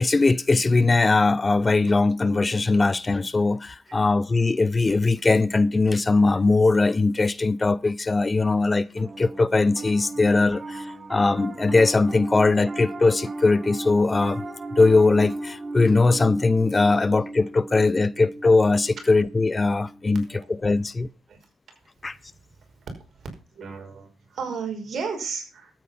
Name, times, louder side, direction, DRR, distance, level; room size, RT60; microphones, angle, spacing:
voice 1, 0.0-14.4 14.8-21.1 22.0-22.2, left 3 dB, 25° left, 0.5 m, -20 dB
Piano, 9.0-20.4, right 2 dB, 30° right, 1.5 m, -36 dB
voice 2, 23.5-25.7, right 5 dB, 55° right, 5.4 m, -34 dB
13.0 x 8.9 x 5.7 m
cardioid pair, 90°, 0 cm